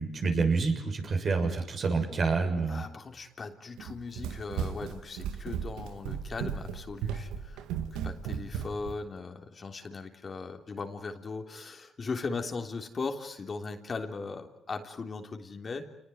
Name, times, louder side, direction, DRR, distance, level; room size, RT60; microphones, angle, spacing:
voice 1, 0.0-2.8, right 4 dB, 55° right, 3 dB, 6.9 m, -28 dB
voice 2, 2.7-15.9, left 4 dB, 45° left, 4 dB, 3.4 m, -38 dB
Run, 3.8-9.0, right 8 dB, 90° right, 1.7 m, -36 dB
28.5 x 20.0 x 9.3 m, 0.80 s
supercardioid pair, 65°, 0 cm